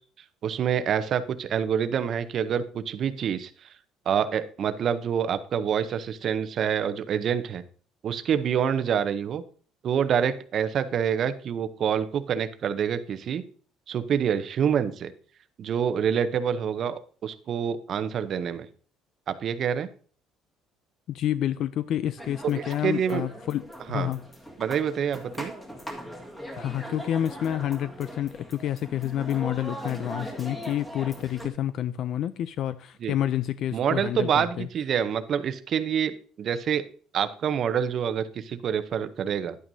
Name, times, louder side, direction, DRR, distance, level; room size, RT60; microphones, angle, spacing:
voice 1, 0.4-3.7 4.1-7.6 8.0-9.4 9.8-13.4 13.9-15.1 15.6-18.7 19.3-19.9 22.5-23.2 23.9-24.1 24.6-25.5 33.0-33.1 33.7-36.8 37.1-39.6, right 8 dB, 45° right, 0.7 m, -27 dB
voice 2, 21.1-24.2 26.6-34.7, left 11 dB, 55° left, 0.3 m, -29 dB
sound 1, 22.2-31.5, equal, 15° left, 1.8 m, -40 dB
10.5 x 8.8 x 2.7 m
cardioid pair, 145°, 0 cm